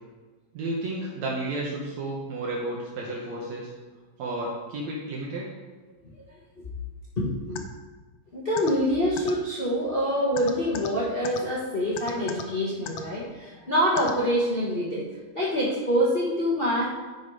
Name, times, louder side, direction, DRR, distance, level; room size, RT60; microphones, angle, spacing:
voice 1, 0.5-3.7 4.2-5.5, right 2 dB, 70° right, -3 dB, 2.3 m, -32 dB
voice 2, 7.2-7.6 8.3-15.1 15.3-16.9, equal, 40° left, -6 dB, 0.8 m, -25 dB
sound 1, 7.5-7.6 8.6-8.7 9.2-9.3 10.4-10.9 11.2-11.4 12.0-12.4 12.9-13.0 14.0-14.1, left 11 dB, 75° left, 1.5 m, -34 dB
11.0 x 4.6 x 4.8 m, 1.3 s
omnidirectional pair, 3.3 m